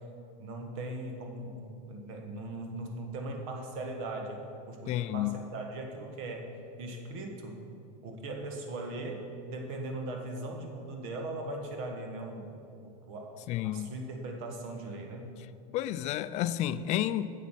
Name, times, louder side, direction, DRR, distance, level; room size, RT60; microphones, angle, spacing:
voice 1, 0.4-4.4 4.7-6.5 6.8-7.6 8.0-15.3, right 2 dB, 65° right, 3 dB, 1.6 m, -39 dB
voice 2, 4.9-5.4 13.5-13.9 15.7-17.3, left 12 dB, 40° left, 15 dB, 0.4 m, -31 dB
9.3 x 7.4 x 5.7 m, 2.6 s
supercardioid pair, 135°, 18 cm